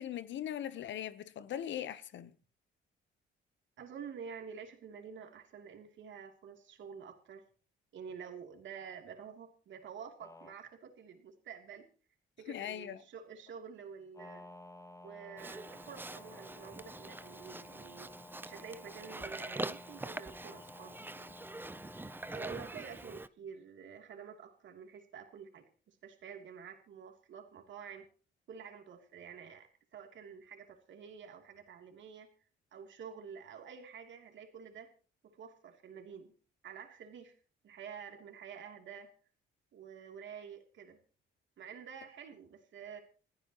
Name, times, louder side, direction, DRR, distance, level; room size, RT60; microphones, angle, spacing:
voice 1, 0.0-2.3 12.5-13.0, left 10 dB, 70° left, 1.0 m, -40 dB
voice 2, 3.8-7.4 7.9-11.8 12.4-14.4 15.0-18.1 18.4-21.3 22.3-28.1 28.5-32.3 32.7-34.9 35.2-36.3 36.6-37.4 37.6-39.1 39.7-41.0 41.6-43.0, right 7 dB, 70° right, 3.1 m, -49 dB
sound 1, 10.2-10.6 14.1-22.7, left 1 dB, 15° left, 1.4 m, -53 dB
Livestock farm animals working animals, 15.4-23.3, right 2 dB, 10° right, 0.6 m, -44 dB
28.5 x 9.8 x 3.0 m
cardioid pair, 90°, 20 cm